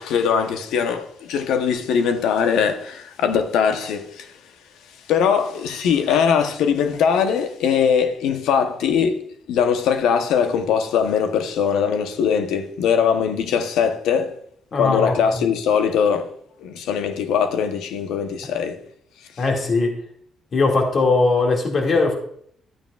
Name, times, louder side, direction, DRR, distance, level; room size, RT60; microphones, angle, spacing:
voice 1, 0.0-4.4 5.1-9.2 9.5-14.4 14.8-16.3 16.6-18.8, left 7 dB, 80° left, 0.9 m, -21 dB
voice 2, 14.7-15.5 19.4-19.9 20.5-22.1, left 3 dB, 55° left, 2.1 m, -20 dB
13.0 x 8.9 x 2.4 m
supercardioid pair, 60°, 0 cm